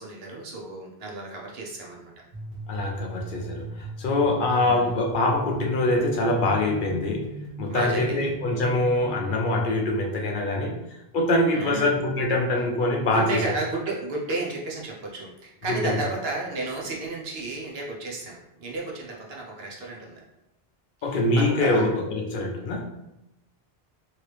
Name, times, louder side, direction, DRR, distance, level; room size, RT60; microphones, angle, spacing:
voice 1, 0.0-2.1 4.6-4.9 7.7-8.3 11.5-11.9 13.0-20.2 21.0-21.9, right 2 dB, 75° right, -2 dB, 1.0 m, -33 dB
sound 1, 2.3-9.2, right 2 dB, 35° right, 1.1 m, -38 dB
voice 2, 2.7-10.8 11.1-13.4 15.8-16.0 21.0-22.9, left 2 dB, 60° left, 1 dB, 0.6 m, -24 dB
3.1 x 2.7 x 3.2 m, 0.91 s
omnidirectional pair, 1.0 m